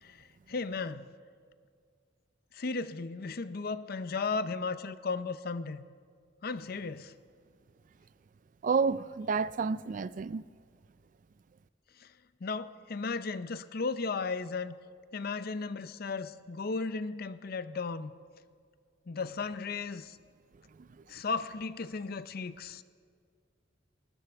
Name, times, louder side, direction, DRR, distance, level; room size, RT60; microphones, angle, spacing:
voice 1, 0.0-1.1 2.5-5.9 6.4-7.1 12.0-12.1 12.4-14.8 15.1-18.1 19.1-20.2 21.1-22.8, left 4 dB, 50° left, 0.6 m, -35 dB
voice 2, 8.6-10.4 20.8-20.9, right 5 dB, 45° right, 0.3 m, -30 dB
29.0 x 13.5 x 3.5 m
head